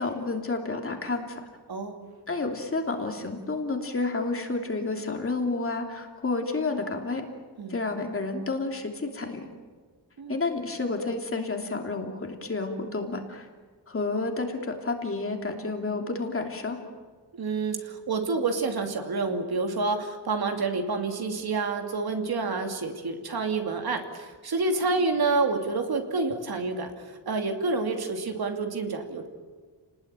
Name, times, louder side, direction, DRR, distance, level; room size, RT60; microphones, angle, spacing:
voice 1, 0.0-1.4 2.3-7.2 7.7-9.5 10.3-13.5 13.9-16.8, left 3 dB, 30° left, 3 dB, 3.0 m, -30 dB
voice 2, 1.7-2.1 7.6-7.8 10.2-10.4 17.3-26.9 27.3-29.3, right 3 dB, 60° right, 4 dB, 2.8 m, -28 dB
29.5 x 19.5 x 9.1 m, 1.5 s
wide cardioid pair, 160°, 42 cm